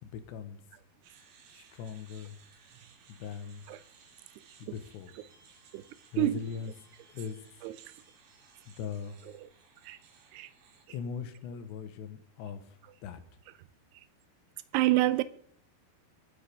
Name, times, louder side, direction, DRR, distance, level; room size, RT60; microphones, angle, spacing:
voice 1, 0.0-0.6 1.5-2.4 3.1-3.6 4.6-5.1 6.1-6.7 7.1-7.4 8.7-9.2 10.9-12.6 13.0-13.2, left 7 dB, 90° left, 3.4 m, -40 dB
sound 1, 1.0-10.9, right 6 dB, 65° right, 3.5 m, -60 dB
voice 2, 14.7-15.2, right 16 dB, 80° right, 2.5 m, -27 dB
19.0 x 9.2 x 3.6 m
omnidirectional pair, 4.9 m